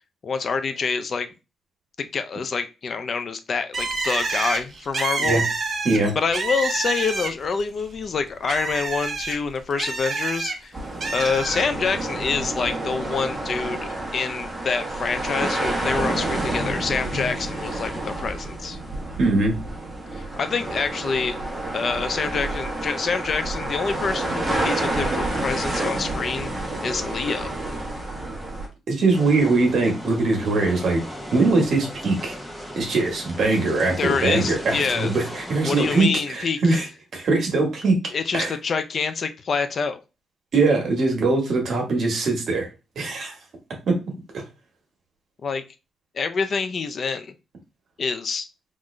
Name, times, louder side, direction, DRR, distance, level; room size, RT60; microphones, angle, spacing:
voice 1, 0.2-1.3 2.0-5.4 6.2-10.7 11.1-18.8 20.1-21.4 21.7-27.5 34.0-35.1 35.6-36.8 38.1-40.0 45.4-45.6 46.1-47.3 48.0-48.5, left 5 dB, 40° left, 10 dB, 0.3 m, -26 dB
Bird, 3.7-7.6 7.9-10.6 11.0-11.7, right 3 dB, 35° right, 0.6 m, -27 dB
sound 1, 10.7-28.7, right 2 dB, 10° right, 1.0 m, -29 dB
voice 2, 19.2-19.6 28.9-31.0 31.3-32.3 32.7-36.9 37.1-38.0 38.3-38.5 40.5-42.7 43.0-43.3 43.9-44.0 44.3-44.4, right 3 dB, 55° right, 2 dB, 1.2 m, -21 dB
sound 2, 29.1-36.0, equal, 5° left, 0.8 m, -37 dB
3.6 x 2.5 x 3.1 m, 0.29 s
cardioid pair, 140°, 0 cm